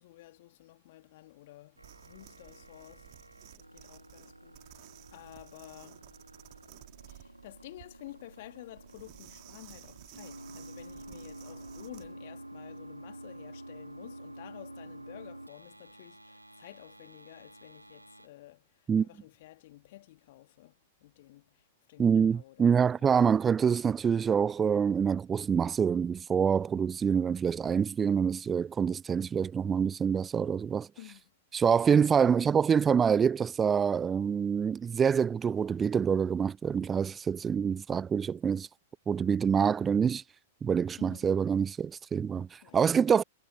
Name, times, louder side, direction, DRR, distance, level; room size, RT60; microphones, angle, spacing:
voice 1, 0.0-3.1 3.5-6.2 7.0-23.2 31.0-31.4 41.0-41.3 42.6-43.2, left 16 dB, 50° left, 3.0 m, -52 dB
sound 1, 1.8-12.1, right 39 dB, 40° right, 3.3 m, -55 dB
sound 2, 1.8-18.3, right 1 dB, 90° right, 2.6 m, -49 dB
voice 2, 22.0-30.9 31.5-38.7 39.1-40.2 40.6-43.2, right 7 dB, 20° right, 0.4 m, -26 dB
figure-of-eight pair, 100°, 0 cm